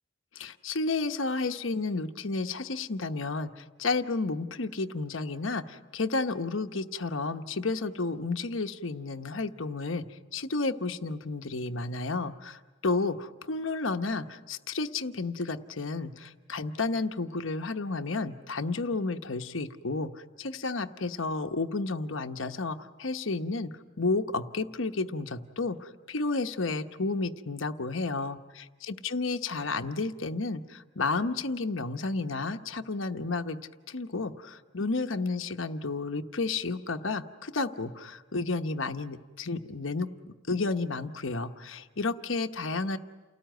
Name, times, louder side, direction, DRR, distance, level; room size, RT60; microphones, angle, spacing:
voice 1, 0.3-33.6 33.9-43.0, left 3 dB, 75° left, 7 dB, 1.0 m, -32 dB
29.5 x 18.5 x 9.3 m, 1.3 s
head